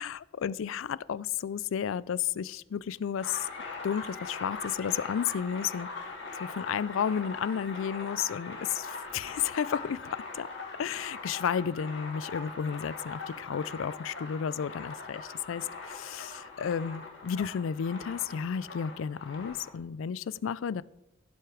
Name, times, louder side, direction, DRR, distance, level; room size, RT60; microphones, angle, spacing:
voice 1, 0.0-3.5 3.8-6.1 6.4-10.5 10.8-20.8, left 7 dB, 80° left, 20 dB, 0.4 m, -32 dB
sound 1, 3.2-19.7, left 3 dB, 65° left, 2.4 m, -41 dB
16.0 x 7.8 x 4.9 m, 0.91 s
head